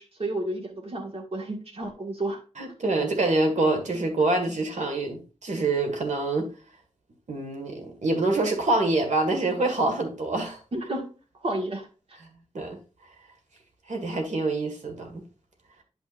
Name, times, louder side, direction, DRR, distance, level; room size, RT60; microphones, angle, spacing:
voice 1, 0.0-2.4 10.7-11.1 11.4-11.9, right 1 dB, 50° right, 1.7 m, -31 dB
voice 2, 2.6-6.5 7.3-10.6 12.5-12.8 13.9-15.2, right 2 dB, 75° right, 1.8 m, -26 dB
10.0 x 5.6 x 2.5 m
wide cardioid pair, 105°, 13 cm